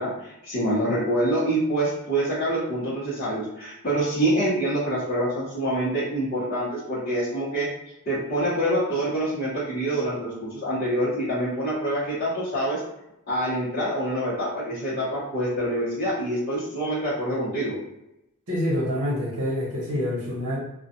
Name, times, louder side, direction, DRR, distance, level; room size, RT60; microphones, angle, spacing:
voice 1, 0.0-7.7 8.1-12.8 13.3-17.8, right 1 dB, 45° left, -13 dB, 0.9 m, -26 dB
voice 2, 18.5-20.6, left 1 dB, 65° right, -4 dB, 1.0 m, -26 dB
2.4 x 2.4 x 2.7 m, 0.87 s
head